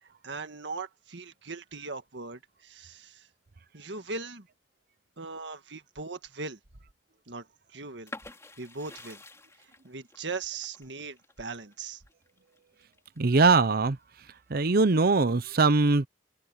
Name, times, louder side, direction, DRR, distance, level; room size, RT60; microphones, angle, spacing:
voice 1, 0.0-3.3 3.7-4.5 5.2-6.6 7.3-7.5 7.7-8.1 8.6-9.2 9.6-12.0, right 4 dB, 85° right, 1.7 m, -39 dB
sound 1, 8.1-13.7 14.1-15.0, left 2 dB, 15° left, 3.0 m, -48 dB
voice 2, 13.2-14.0 14.5-16.1, right 3 dB, 60° right, 0.7 m, -21 dB
open air
head